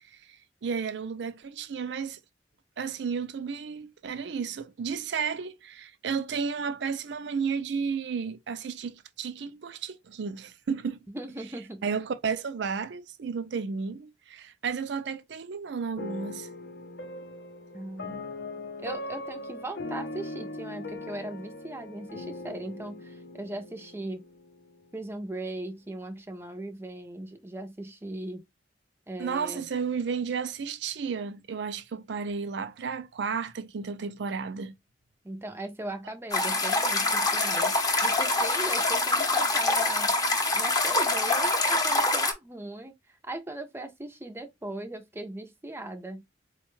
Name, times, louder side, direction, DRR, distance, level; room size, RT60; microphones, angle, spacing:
voice 1, 0.6-2.2 2.8-11.0 11.8-16.5 29.2-34.8, right 6 dB, 70° right, 0.4 m, -32 dB
voice 2, 11.1-11.8 17.7-18.2 18.8-24.2 24.9-28.4 29.1-29.7 35.2-37.8 38.0-40.1 40.5-42.9 43.2-46.2, right 1 dB, 15° right, 0.5 m, -38 dB
sound 1, 16.0-25.1, left 2 dB, 60° left, 0.6 m, -40 dB
sound 2, 36.3-42.3, left 2 dB, 20° left, 0.7 m, -25 dB
4.3 x 2.2 x 3.0 m
head